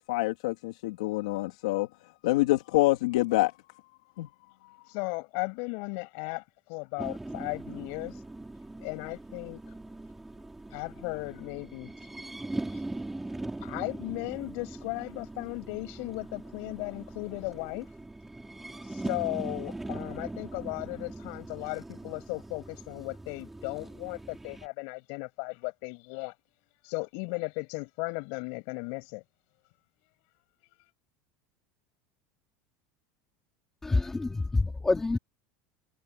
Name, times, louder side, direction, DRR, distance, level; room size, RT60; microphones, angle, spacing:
voice 1, 0.1-1.9 2.2-3.5 4.2-4.3, left 18 dB, 90° left, 3.0 m, -26 dB
voice 2, 4.9-6.4 6.7-8.2 8.8-9.6 10.7-11.9 12.7-12.8 13.6-17.9 18.9-26.3 26.8-29.2, left 34 dB, 65° left, 7.3 m, -36 dB
sound 1, 7.0-24.7, right 2 dB, 5° right, 6.1 m, -41 dB
voice 3, 33.8-35.2, left 3 dB, 10° left, 2.9 m, -27 dB
supercardioid pair, 150°, 4 cm